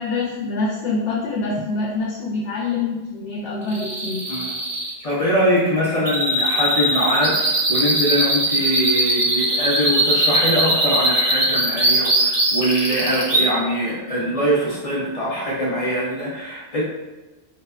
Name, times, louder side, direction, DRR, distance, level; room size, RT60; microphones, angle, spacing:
voice 1, 0.0-4.2, left 3 dB, 80° left, -5 dB, 0.9 m, -25 dB
sound 1, 3.7-13.4, right 1 dB, 40° right, 0.4 m, -20 dB
voice 2, 5.0-16.8, equal, 55° left, -6 dB, 0.4 m, -22 dB
2.7 x 2.2 x 2.3 m, 1.1 s
omnidirectional pair, 1.2 m